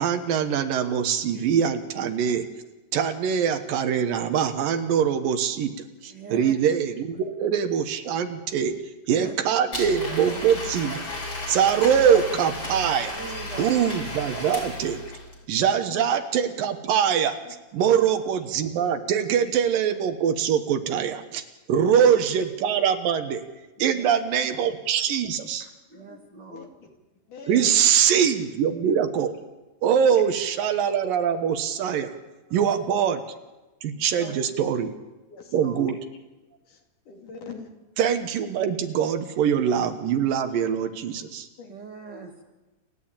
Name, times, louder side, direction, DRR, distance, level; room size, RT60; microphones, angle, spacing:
voice 1, 0.0-2.4 2.9-5.7 6.0-8.7 9.1-11.1 11.5-13.1 13.6-15.0 15.5-17.4 17.7-21.4 21.7-23.4 23.8-25.7 27.5-29.3 29.8-32.1 32.5-33.2 33.8-34.9 35.5-36.0 38.0-41.5, right 8 dB, 80° right, 8 dB, 2.9 m, -23 dB
voice 2, 6.1-6.5 7.1-7.2 9.1-9.3 9.9-10.4 13.2-13.8 17.8-18.0 21.8-22.0 23.8-24.1 25.9-26.7 31.9-32.0 32.5-32.6 35.6-35.8 41.7-42.4, right 4 dB, 40° right, 2 dB, 2.0 m, -41 dB
Domestic sounds home sounds, 9.7-15.4, left 2 dB, 35° left, 5.3 m, -34 dB
voice 3, 15.6-16.1 17.5-17.6 22.1-22.4 23.2-23.3 24.4-24.6 25.6-26.7 27.3-27.8 29.9-30.2 34.1-34.4 35.3-35.9 36.6-37.7 41.6-41.7, left 4 dB, 65° left, 2 dB, 4.0 m, -44 dB
28.5 x 12.0 x 8.8 m, 1.1 s
omnidirectional pair, 4.0 m